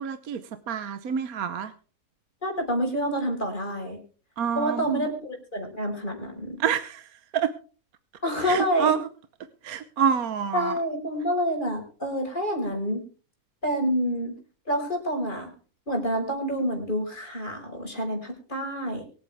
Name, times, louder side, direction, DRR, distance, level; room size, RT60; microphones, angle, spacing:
voice 1, 0.0-1.7 4.4-5.1 6.6-7.5 8.4-9.0 9.6-10.7, right 7 dB, 70° right, 11 dB, 1.3 m, -27 dB
voice 2, 2.4-4.0 4.5-6.6 8.2-8.9 10.5-13.1 13.6-14.4 14.7-15.5 15.9-19.0, equal, 30° left, 2 dB, 5.3 m, -28 dB
23.5 x 9.3 x 3.5 m, 0.38 s
omnidirectional pair, 1.7 m